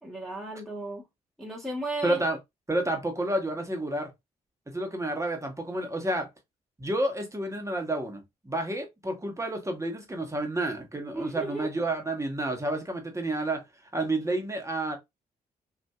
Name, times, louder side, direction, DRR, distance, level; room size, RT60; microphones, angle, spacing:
voice 1, 0.0-1.1 1.4-2.2 11.1-11.7, right 2 dB, ahead, 1.2 m, -35 dB
voice 2, 2.0-2.4 2.7-4.1 4.7-6.3 6.8-13.6 13.9-15.0, right 1 dB, 15° right, 1.1 m, -30 dB
2.7 x 2.5 x 2.3 m
hypercardioid pair, 40°, 17 cm